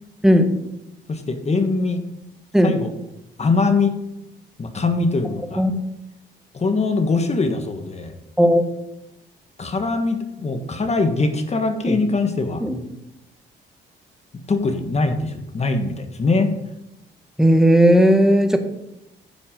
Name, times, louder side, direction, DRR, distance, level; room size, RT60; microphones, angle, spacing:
voice 1, 1.1-2.0 2.6-2.9 3.4-3.9 4.6-5.6 6.5-8.1 9.6-12.6 14.5-16.5, left 3 dB, 35° left, 6 dB, 1.5 m, -22 dB
voice 2, 17.4-18.6, equal, ahead, 6 dB, 1.5 m, -15 dB
10.0 x 7.0 x 5.2 m, 0.87 s
cardioid pair, 90°, 20 cm